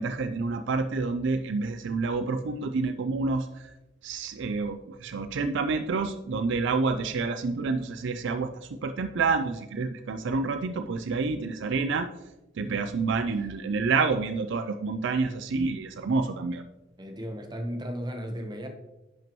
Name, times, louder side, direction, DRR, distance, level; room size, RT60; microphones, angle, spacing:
voice 1, 0.0-3.7 4.0-12.1 12.6-16.6, right 4 dB, 65° right, 9 dB, 0.4 m, -28 dB
voice 2, 17.0-18.7, equal, 20° right, 4 dB, 1.0 m, -35 dB
10.5 x 5.9 x 3.0 m, 0.99 s
head